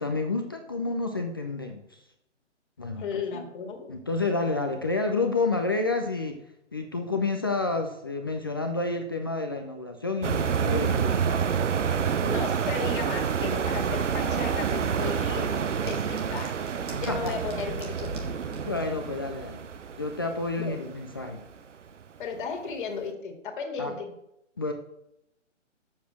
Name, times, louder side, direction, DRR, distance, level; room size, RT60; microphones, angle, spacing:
voice 1, 0.0-2.0 2.8-3.0 3.3-3.4 3.9-6.4 6.7-11.1 16.9-17.3 18.7-19.6 20.0-21.4 23.8-23.9 24.6-24.7, left 3 dB, 20° left, 4 dB, 0.4 m, -29 dB
voice 2, 3.0-3.9 12.2-15.6 15.9-16.6 16.9-18.2 20.6-20.8 22.2-24.1, left 5 dB, 45° left, 2 dB, 2.0 m, -35 dB
sound 1, 10.2-21.6 22.0-22.2, right 7 dB, 75° right, 0.8 m, -28 dB
sound 2, 15.9-18.9, right 4 dB, 15° right, 1.2 m, -48 dB
7.3 x 6.7 x 6.1 m, 0.81 s
figure-of-eight pair, 135°, 37 cm